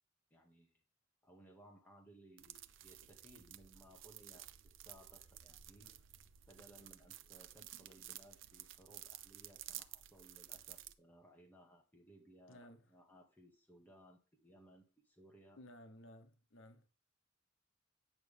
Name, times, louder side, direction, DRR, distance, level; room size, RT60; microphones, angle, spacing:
voice 1, 0.3-0.8 1.2-5.9 6.5-15.6, right 1 dB, 10° left, 2.0 m, -62 dB
sound 1, 2.4-10.9, right 12 dB, 80° right, 0.6 m, -53 dB
voice 2, 12.5-12.9 15.6-16.9, left 1 dB, 90° left, 1.1 m, -57 dB
9.0 x 6.2 x 3.5 m
head